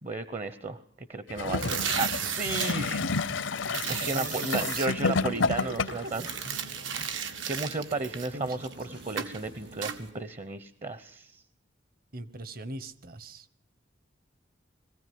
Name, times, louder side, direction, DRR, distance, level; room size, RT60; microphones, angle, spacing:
voice 1, 0.0-2.8 3.9-6.3 6.9-11.4, right 3 dB, 35° right, 13 dB, 0.8 m, -34 dB
Gurgling / Toilet flush, 1.3-6.2 7.0-7.1, left 4 dB, 80° left, 0.8 m, -30 dB
sound 1, 1.5-10.1, equal, 65° right, 6.5 m, -47 dB
sound 2, 1.5-2.7 3.7-4.9 6.1-8.7 9.2-9.4 9.8-10.0, right 8 dB, 80° right, 1.8 m, -34 dB
voice 2, 1.6-4.9 5.3-5.5 7.5-7.8 8.3-9.1 12.1-13.5, right 2 dB, 50° right, 15 dB, 1.2 m, -42 dB
22.0 x 15.5 x 9.4 m, 0.68 s
head